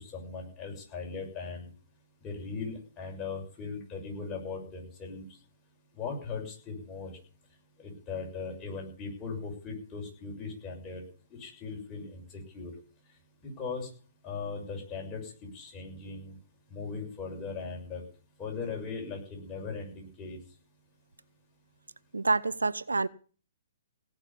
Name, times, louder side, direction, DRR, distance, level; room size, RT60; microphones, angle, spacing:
voice 1, 0.0-1.7 2.2-5.3 6.0-7.1 7.8-11.0 11.3-12.7 13.4-13.9 14.2-16.3 16.7-18.0 18.4-20.4, left 4 dB, 20° left, 6.9 m, -39 dB
voice 2, 22.1-23.1, right 3 dB, 85° right, 0.7 m, -27 dB
17.5 x 6.6 x 9.7 m
figure-of-eight pair, 125°, 0 cm